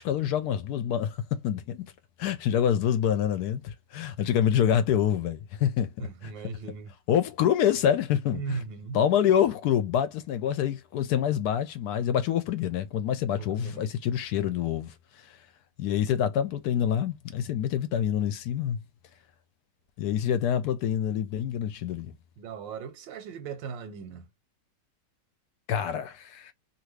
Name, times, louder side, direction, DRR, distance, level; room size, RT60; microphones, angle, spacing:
voice 1, 0.0-1.8 2.2-6.3 7.1-8.6 8.9-14.9 15.8-18.8 20.0-22.1 25.7-26.5, left 9 dB, 70° left, 1.0 m, -26 dB
voice 2, 6.0-6.9 8.3-9.0 13.4-13.8 22.4-24.3, right 5 dB, 85° right, 1.4 m, -37 dB
2.8 x 2.6 x 3.1 m
omnidirectional pair, 1.9 m